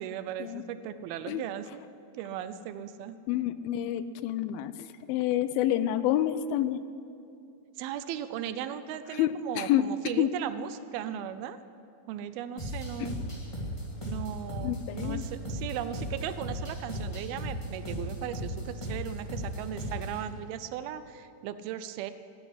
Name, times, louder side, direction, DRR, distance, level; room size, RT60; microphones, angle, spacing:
voice 1, 0.0-1.8 2.1-3.2 7.8-11.6 12.1-13.2 14.0-22.1, right 10 dB, 90° right, 12 dB, 2.6 m, -37 dB
voice 2, 3.3-6.8 9.1-9.9 10.2-10.3 14.6-15.2, left 12 dB, 85° left, 13 dB, 2.4 m, -28 dB
sound 1, 12.6-20.2, equal, 10° left, 2.2 m, -36 dB
14.5 x 10.0 x 9.9 m, 2.5 s
omnidirectional pair, 4.3 m